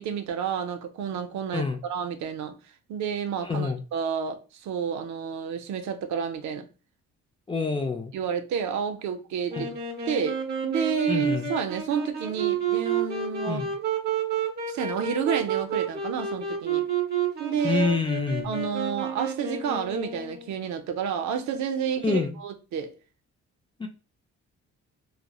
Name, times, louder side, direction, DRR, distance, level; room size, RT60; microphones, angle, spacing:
voice 1, 0.0-2.6 2.9-6.7 8.1-9.7 10.1-13.6 14.7-16.9 17.4-18.0 18.4-23.0, right 7 dB, 70° right, 0.5 m, -30 dB
voice 2, 3.4-3.8 7.5-8.1 9.5-9.7 11.1-11.5 13.5-13.7 17.6-18.6 22.0-22.4 23.8-23.9, left 4 dB, 20° left, 0.3 m, -27 dB
Wind instrument woodwind instrument, 9.5-20.6, right 7 dB, 35° right, 0.8 m, -30 dB
2.7 x 2.0 x 2.2 m
cardioid pair, 90°, 30 cm